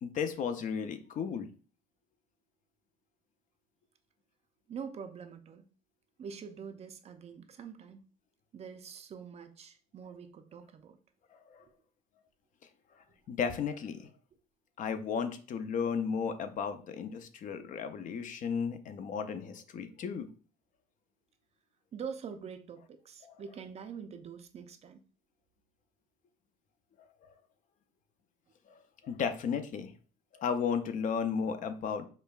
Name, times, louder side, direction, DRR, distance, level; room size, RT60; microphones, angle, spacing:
voice 1, 0.0-1.5 11.3-11.6 13.3-14.1 14.8-20.3 23.2-23.4 28.7-28.8 29.0-29.9 30.3-32.1, left 6 dB, 50° left, 9 dB, 0.5 m, -34 dB
voice 2, 4.7-5.7 6.2-8.0 8.5-11.0 11.6-11.7 21.9-25.0, right 6 dB, 40° right, 8 dB, 0.4 m, -45 dB
5.0 x 2.2 x 2.3 m, 0.39 s
cardioid pair, 110°, 17 cm